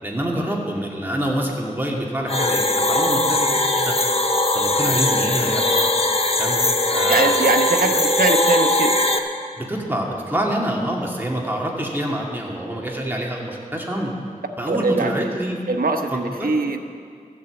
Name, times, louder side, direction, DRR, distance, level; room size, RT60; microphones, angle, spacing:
voice 1, 0.0-4.0 4.5-5.9 6.4-6.6 6.9-7.4 7.8-7.9 9.6-14.1 14.6-15.6 16.1-16.5, right 1 dB, 15° right, -2 dB, 2.4 m, -26 dB
sound 1, 2.3-9.2, left 1 dB, 40° left, 1.1 m, -20 dB
voice 2, 7.1-9.0 14.7-15.3 15.7-16.8, right 3 dB, 85° right, 5 dB, 1.0 m, -22 dB
13.5 x 8.3 x 8.2 m, 2.3 s
wide cardioid pair, 60°, 15 cm